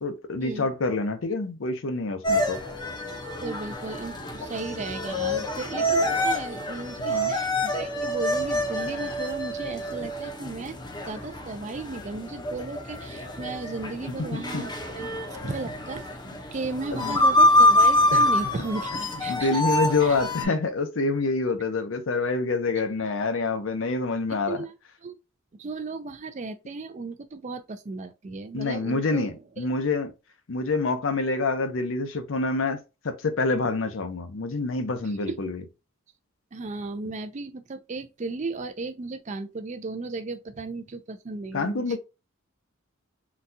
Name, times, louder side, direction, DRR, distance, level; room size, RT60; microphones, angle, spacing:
voice 1, 0.0-2.6 7.0-7.4 14.3-14.6 15.4-15.5 16.9-17.2 18.1-18.3 18.9-24.6 28.5-30.1 30.5-32.8 33.0-35.6 41.5-42.0, left 3 dB, 75° left, 0.6 m, -27 dB
sound 1, 2.2-20.4, left 1 dB, 20° left, 0.6 m, -26 dB
voice 2, 3.4-10.8 11.1-16.1 16.5-19.6 20.0-20.2 24.5-24.7 25.0-25.2 25.6-29.7 35.0-35.4 36.5-42.0, right 3 dB, 35° right, 0.4 m, -35 dB
3.9 x 2.3 x 2.6 m
head